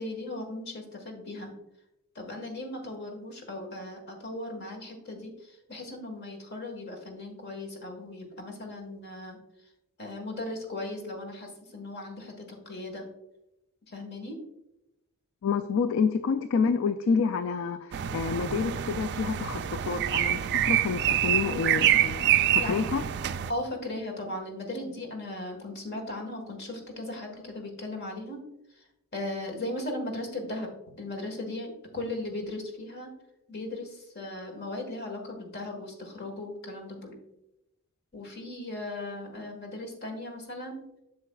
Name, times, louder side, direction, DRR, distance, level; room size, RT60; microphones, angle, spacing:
voice 1, 0.0-1.5 2.1-9.4 10.0-13.0 13.9-14.4 22.6-22.7 23.5-28.4 28.7-28.8 29.1-30.7 31.0-33.1 33.5-37.2 38.1-40.8, left 1 dB, 50° left, 3 dB, 1.4 m, -37 dB
voice 2, 15.4-23.0, left 5 dB, 65° left, 10 dB, 0.3 m, -28 dB
sound 1, 17.9-23.5, right 11 dB, 50° right, 0.3 m, -26 dB
8.0 x 6.7 x 2.3 m, 0.89 s
head